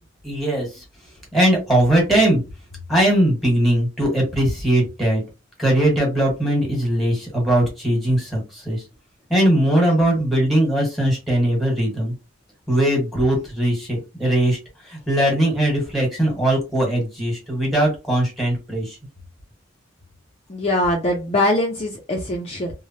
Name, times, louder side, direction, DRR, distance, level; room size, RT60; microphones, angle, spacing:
voice 1, 0.2-0.8 1.3-2.4 2.9-5.2 5.6-8.8 9.3-12.1 12.7-14.6 14.8-19.0, right 1 dB, ahead, -1 dB, 1.3 m, -20 dB
voice 2, 20.5-22.7, left 1 dB, 30° left, 0 dB, 0.4 m, -22 dB
3.1 x 2.0 x 2.7 m, 0.27 s
head